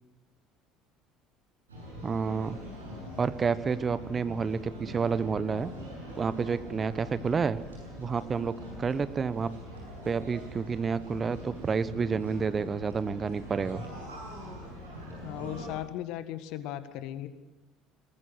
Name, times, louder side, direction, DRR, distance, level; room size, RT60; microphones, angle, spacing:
sound 1, 1.7-15.7, equal, 85° right, 7.1 m, -43 dB
voice 1, 2.0-2.6 3.2-5.7 6.2-7.6 8.0-9.5 10.0-13.8, right 5 dB, 30° right, 15 dB, 1.1 m, -29 dB
voice 2, 15.2-17.3, left 12 dB, 60° left, 12 dB, 1.7 m, -37 dB
22.5 x 19.5 x 6.3 m, 1.1 s
figure-of-eight pair, 60°, 0 cm